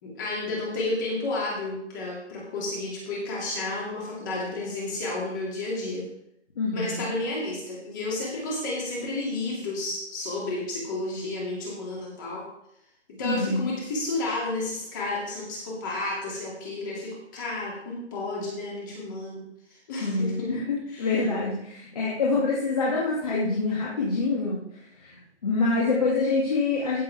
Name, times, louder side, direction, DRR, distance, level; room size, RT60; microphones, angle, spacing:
voice 1, 0.0-6.0 6.7-12.4 13.1-19.5 19.9-20.5 20.9-21.2, left 2 dB, 15° left, -4 dB, 2.5 m, -31 dB
voice 2, 6.6-7.0 13.2-13.7 20.0-27.0, left 3 dB, 30° left, -5 dB, 2.3 m, -26 dB
15.5 x 6.7 x 3.5 m, 0.75 s
figure-of-eight pair, 165°, 35 cm